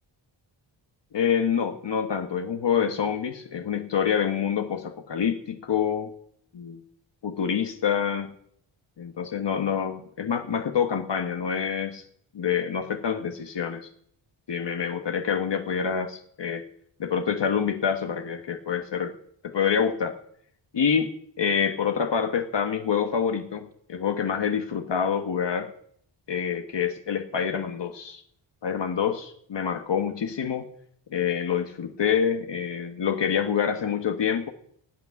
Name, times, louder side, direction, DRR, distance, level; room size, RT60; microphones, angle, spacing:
voice 1, 1.1-6.1 6.5-6.8 7.2-8.3 9.0-12.0 12.3-13.9 14.5-16.6 17.0-19.1 19.4-20.2 20.7-25.7 26.3-28.2 28.6-30.7 31.1-34.5, left 7 dB, 60° left, 6 dB, 1.3 m, -26 dB
17.0 x 6.0 x 9.4 m, 0.67 s
wide cardioid pair, 150°, 49 cm